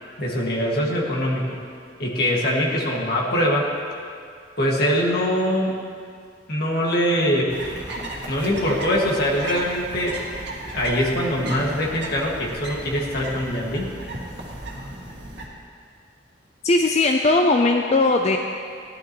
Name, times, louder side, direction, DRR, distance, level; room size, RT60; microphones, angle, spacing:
voice 1, 0.2-1.6 2.0-3.7 4.6-5.8 6.5-7.5 8.3-10.2 10.7-13.9, equal, 60° left, -2 dB, 2.0 m, -23 dB
sound 1, 7.5-15.5, right 1 dB, 65° right, 2.0 m, -35 dB
voice 2, 16.6-18.4, left 2 dB, 35° left, 3 dB, 0.5 m, -18 dB
17.0 x 11.5 x 3.1 m, 2.2 s
head